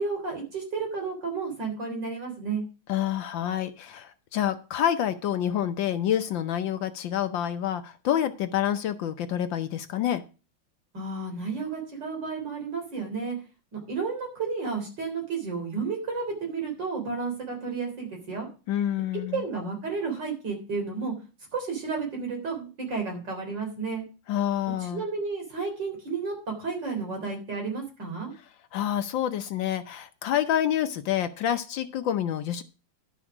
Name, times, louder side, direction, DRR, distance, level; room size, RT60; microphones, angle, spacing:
voice 1, 0.0-2.6 10.9-13.4 13.7-18.5 19.3-21.1 21.5-24.0 24.8-28.3, right 4 dB, 55° right, 2 dB, 4.2 m, -32 dB
voice 2, 2.9-10.2 18.7-19.4 24.3-25.0 28.7-32.6, left 10 dB, 70° left, 10 dB, 1.4 m, -28 dB
11.0 x 6.3 x 5.9 m, 0.33 s
omnidirectional pair, 2.3 m